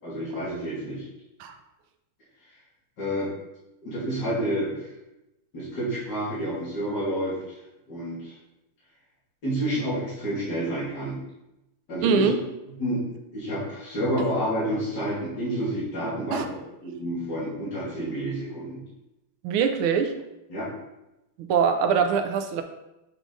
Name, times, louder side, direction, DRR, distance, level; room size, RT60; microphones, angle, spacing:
voice 1, 0.0-1.0 3.0-3.3 3.8-4.9 5.5-7.3 7.9-8.3 9.4-11.2 11.9-12.3 12.8-13.0 13.3-16.5 16.8-18.8 20.5-20.7, right 1 dB, 50° left, -10 dB, 3.1 m, -29 dB
voice 2, 12.0-12.4 16.3-16.5 19.4-20.1 21.4-22.6, right 6 dB, 80° right, 7 dB, 1.5 m, -23 dB
7.6 x 4.8 x 3.9 m, 0.93 s
omnidirectional pair, 2.4 m